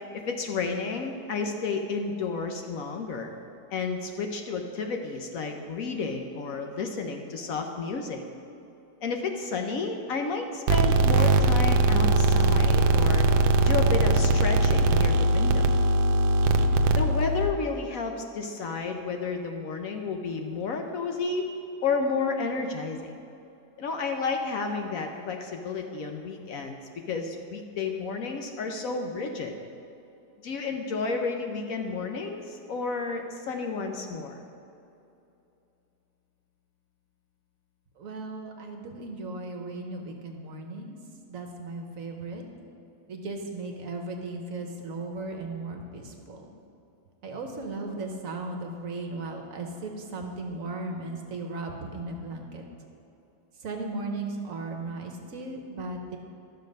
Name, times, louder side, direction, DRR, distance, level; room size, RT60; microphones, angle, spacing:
voice 1, 0.1-3.3 3.7-8.2 9.0-13.2 13.6-15.7 16.9-21.5 21.8-23.1 23.8-26.8 27.1-29.5 30.4-34.4, left 4 dB, 60° left, 4 dB, 1.0 m, -31 dB
sound 1, 10.7-17.5, right 2 dB, 80° right, 1.2 m, -21 dB
voice 2, 38.0-41.0 41.3-42.4 43.1-46.5 47.2-52.6 53.6-56.2, right 2 dB, 60° right, 3 dB, 1.2 m, -36 dB
12.0 x 6.6 x 5.3 m, 2.8 s
omnidirectional pair, 1.8 m